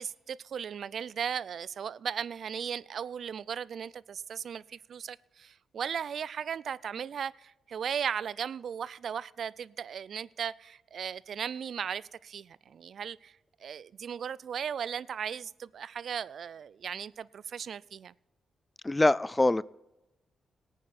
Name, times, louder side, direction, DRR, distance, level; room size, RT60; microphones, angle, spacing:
voice 1, 0.0-18.1, right 7 dB, 65° right, 0.4 m, -37 dB
voice 2, 18.8-19.6, left 2 dB, 20° left, 0.4 m, -24 dB
18.5 x 9.0 x 4.2 m
supercardioid pair, 55°, 0 cm